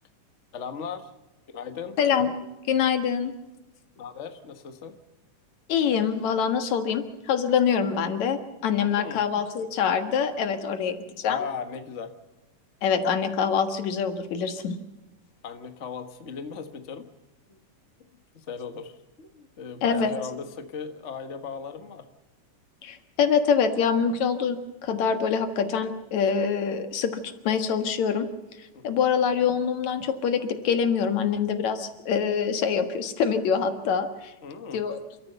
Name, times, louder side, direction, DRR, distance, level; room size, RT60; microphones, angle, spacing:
voice 1, 0.5-1.1 1.5-2.0 4.0-4.9 8.9-9.2 11.2-12.1 15.4-17.1 17.5-17.6 18.3-22.1 28.7-29.0 34.4-34.8, left 6 dB, 90° left, 8 dB, 0.6 m, -37 dB
voice 2, 2.0-2.3 2.7-3.3 5.7-11.4 12.8-14.8 19.8-20.1 22.8-28.3 28.8-34.3 34.7-35.0, left 7 dB, 60° left, 8 dB, 2.7 m, -25 dB
29.0 x 14.0 x 6.8 m, 1.0 s
omnidirectional pair, 3.8 m